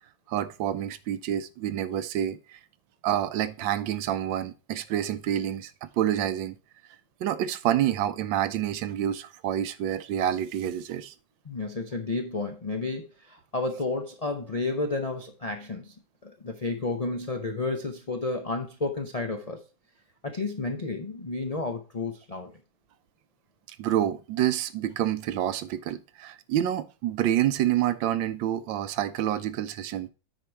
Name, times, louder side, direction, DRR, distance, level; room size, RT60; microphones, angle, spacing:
voice 1, 0.3-2.6 3.0-6.6 7.2-11.1 23.7-30.1, right 11 dB, 85° right, 1.3 m, -28 dB
voice 2, 11.4-15.9 16.2-19.6 20.2-22.6, left 3 dB, 70° left, 0.3 m, -31 dB
9.1 x 4.6 x 4.5 m
omnidirectional pair, 2.1 m